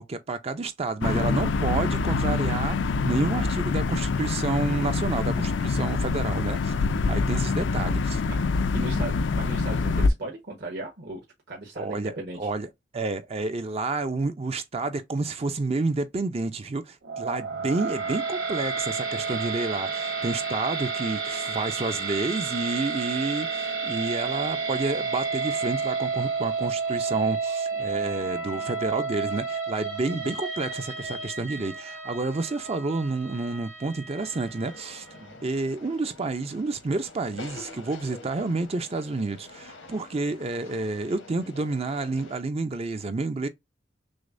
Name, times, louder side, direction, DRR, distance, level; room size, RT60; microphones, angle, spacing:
voice 1, 0.0-6.7 7.1-8.2 8.7-9.1 11.8-12.7 12.9-35.1 35.4-43.5, right 3 dB, 30° right, 0.5 m, -30 dB
sound 1, 1.0-10.1, left 4 dB, 65° left, 0.4 m, -25 dB
voice 2, 6.9-7.3 8.3-8.4 8.7-12.4 35.1-35.4, right 1 dB, 60° right, 1.3 m, -37 dB
sound 2, 17.0-35.3, right 4 dB, 90° right, 2.5 m, -31 dB
sound 3, 34.2-42.4, left 2 dB, 85° left, 1.1 m, -46 dB
6.3 x 2.1 x 2.5 m
head